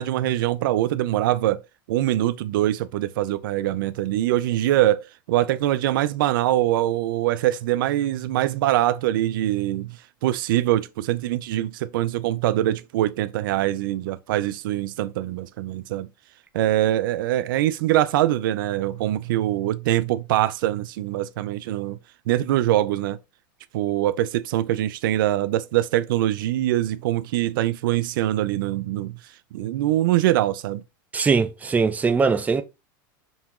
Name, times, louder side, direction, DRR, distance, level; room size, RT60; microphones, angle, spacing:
voice 1, 0.0-1.6 1.9-10.0 10.2-16.1 16.5-22.0 22.3-23.2 23.7-29.2 29.5-30.8, right 14 dB, 75° right, 0.4 m, -23 dB
voice 2, 31.1-32.6, right 5 dB, 15° right, 0.5 m, -21 dB
5.4 x 2.9 x 2.4 m
supercardioid pair, 125°, 11 cm